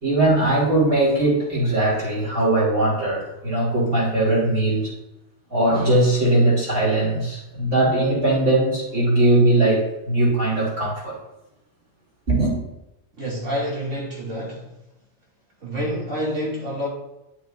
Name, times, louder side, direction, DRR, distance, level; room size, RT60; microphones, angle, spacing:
voice 1, 0.0-4.9 5.5-11.2 12.3-12.6, right 2 dB, 65° right, -4 dB, 3.4 m, -20 dB
voice 2, 13.2-14.7 15.6-16.9, equal, 90° right, -5 dB, 3.0 m, -28 dB
9.7 x 8.5 x 2.6 m, 0.90 s
omnidirectional pair, 1.2 m